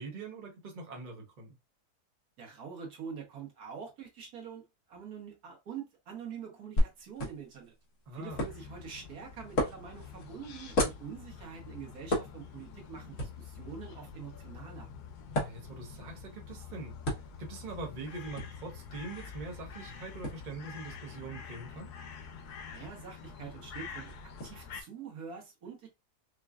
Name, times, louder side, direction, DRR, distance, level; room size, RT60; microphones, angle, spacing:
voice 1, 0.0-1.6 8.1-8.4 15.4-17.0 17.4-21.9, right 3 dB, 35° right, 0.9 m, -43 dB
voice 2, 2.4-7.7 8.1-14.9 22.7-24.1 24.4-25.9, right 7 dB, 70° right, 1.7 m, -45 dB
sound 1, 6.8-24.5, equal, 55° left, 1.6 m, -38 dB
sound 2, 8.3-24.8, left 6 dB, 90° left, 1.2 m, -47 dB
5.1 x 2.2 x 2.4 m
omnidirectional pair, 1.6 m